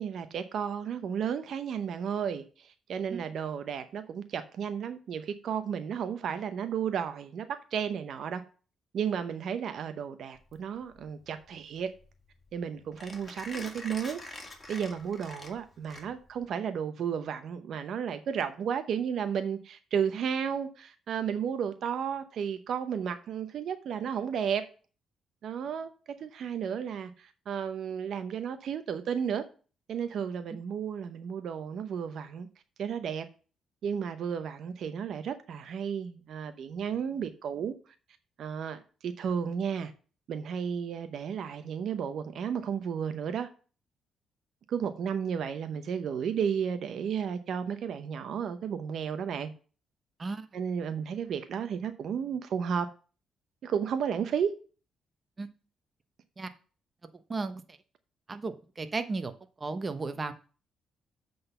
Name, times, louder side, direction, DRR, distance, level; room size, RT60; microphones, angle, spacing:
voice 1, 0.0-8.4 8.9-11.9 12.5-14.2 14.7-24.6 25.4-25.9 26.2-29.5 29.9-32.5 32.8-33.2 33.8-37.7 38.4-39.9 40.3-43.5 44.7-49.5 50.5-52.9 53.6-54.5, right 7 dB, 70° right, 0.7 m, -33 dB
Mechanisms, 10.4-16.5, left 2 dB, 25° left, 2.2 m, -46 dB
voice 2, 57.3-57.6 58.3-59.3 59.6-60.3, right 3 dB, 35° right, 1.0 m, -34 dB
7.8 x 4.0 x 6.7 m
supercardioid pair, 70°, 0 cm